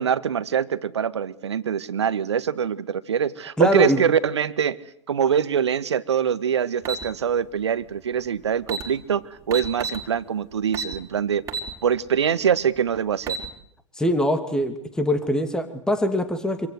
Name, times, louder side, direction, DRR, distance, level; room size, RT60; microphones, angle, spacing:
voice 1, 0.0-4.8 5.1-11.4 11.8-13.4, right 8 dB, 60° right, 14 dB, 1.7 m, -24 dB
voice 2, 3.6-4.0 14.0-16.7, equal, 5° left, 9 dB, 2.8 m, -23 dB
sound 1, 6.8-7.0 8.3-8.4 8.6-8.9 9.5-10.0 10.7-11.0 11.5-11.7 12.1-12.2 13.0-13.5, right 5 dB, 20° right, 4.8 m, -29 dB
26.5 x 26.5 x 8.2 m, 0.64 s
figure-of-eight pair, 105°, 16 cm